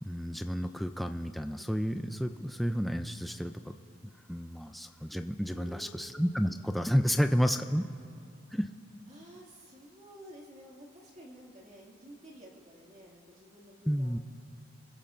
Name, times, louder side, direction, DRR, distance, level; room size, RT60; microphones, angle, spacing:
voice 1, 0.0-3.8 4.3-7.9 8.5-8.7 13.9-14.2, equal, ahead, 6 dB, 0.4 m, -31 dB
voice 2, 5.5-6.1 7.6-7.9 9.1-14.2, equal, 35° right, -2 dB, 2.3 m, -52 dB
29.0 x 16.0 x 2.6 m, 2.3 s
head